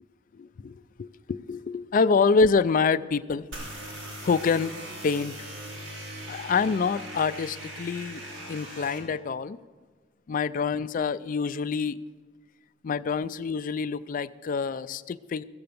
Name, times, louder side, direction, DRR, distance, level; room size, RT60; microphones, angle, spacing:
voice 1, 0.3-3.4 4.2-5.4 6.3-8.2 8.5-9.6 10.3-12.0 12.8-15.4, left 5 dB, 45° left, 14 dB, 0.3 m, -26 dB
sound 1, 3.5-9.0, right 1 dB, 85° right, 3.8 m, -40 dB
15.0 x 7.8 x 6.9 m, 1.4 s
head